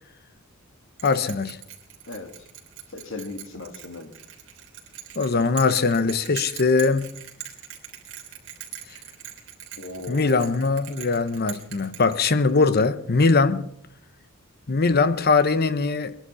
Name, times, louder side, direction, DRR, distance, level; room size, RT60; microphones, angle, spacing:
voice 1, 1.0-1.6 5.2-7.2 10.1-13.7 14.7-16.2, left 4 dB, 50° left, 0.9 m, -21 dB
Bell, 1.0-12.6, right 11 dB, 65° right, 3.3 m, -41 dB
voice 2, 2.9-4.1 9.8-10.5, left 2 dB, 65° left, 2.2 m, -37 dB
22.0 x 11.0 x 5.6 m
head